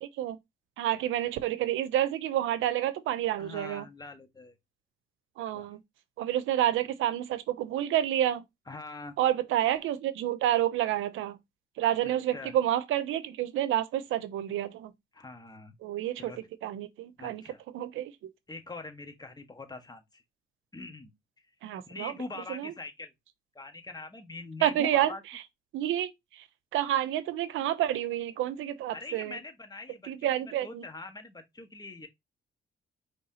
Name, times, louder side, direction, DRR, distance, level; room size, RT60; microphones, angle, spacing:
voice 1, 0.0-0.4 0.8-3.9 5.4-5.8 6.2-8.4 9.2-11.4 11.8-14.9 15.8-17.4 17.7-18.3 21.6-22.1 22.5-22.7 24.6-25.1 25.7-26.5 26.7-29.4 30.0-30.8, right 12 dB, 85° right, 0.7 m, -29 dB
voice 2, 3.3-4.6 5.5-5.7 8.7-9.1 12.0-12.5 15.1-15.7 16.2-16.4 17.2-17.6 18.5-20.2 20.7-21.1 21.6-23.1 23.5-25.2 28.9-32.1, left 3 dB, 20° left, 1.5 m, -43 dB
5.4 x 3.4 x 2.8 m
cardioid pair, 90°, 20 cm